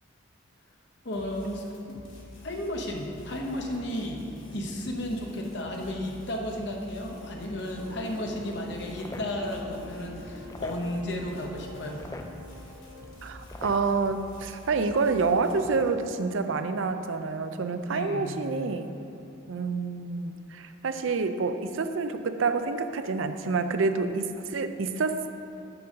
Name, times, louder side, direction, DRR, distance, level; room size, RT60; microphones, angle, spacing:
voice 1, 1.0-2.0 2.4-4.2 4.5-12.0 17.9-18.4, left 1 dB, 55° left, 1 dB, 0.9 m, -33 dB
sound 1, 1.1-15.9, left 1 dB, 85° left, 1.6 m, -48 dB
sound 2, 7.7-13.4, left 1 dB, 30° right, 0.8 m, -45 dB
sound 3, 8.4-14.4, left 2 dB, 15° left, 0.3 m, -46 dB
voice 2, 13.2-18.9 19.5-25.3, right 4 dB, 70° right, 9 dB, 0.5 m, -28 dB
6.8 x 5.5 x 6.4 m, 2.9 s
head